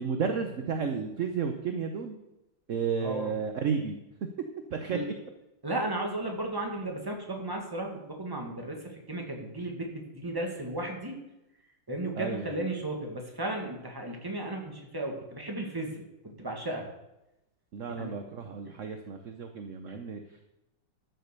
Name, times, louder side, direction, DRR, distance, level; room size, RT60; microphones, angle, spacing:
voice 1, 0.0-2.2 2.7-4.0 4.7-5.0 12.1-12.6 17.7-20.5, right 6 dB, 55° right, 6 dB, 0.9 m, -32 dB
voice 2, 3.0-3.3 4.9-5.0 5.6-11.2 11.9-16.0 16.4-16.9 17.9-18.1, right 1 dB, 10° right, 1 dB, 1.8 m, -34 dB
12.0 x 6.6 x 6.8 m, 0.93 s
omnidirectional pair, 2.2 m